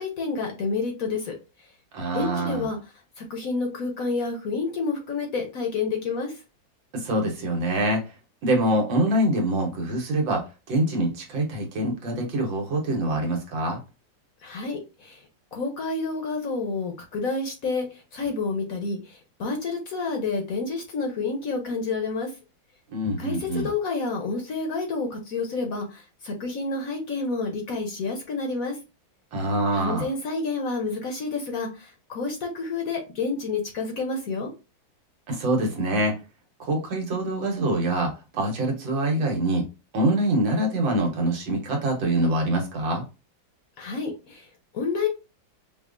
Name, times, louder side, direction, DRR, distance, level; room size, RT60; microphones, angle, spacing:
voice 1, 0.0-1.3 2.1-2.8 3.2-6.3 14.4-15.2 15.5-17.9 18.1-22.3 23.2-28.8 29.7-34.5 43.8-44.5 44.7-45.1, left 4 dB, 60° left, 1.0 m, -29 dB
voice 2, 1.9-2.7 6.9-8.0 8.4-13.8 22.9-23.7 29.3-30.1 35.3-36.1 36.6-39.7 39.9-43.0, right 1 dB, 80° right, 1.9 m, -25 dB
5.2 x 2.4 x 2.5 m
omnidirectional pair, 2.1 m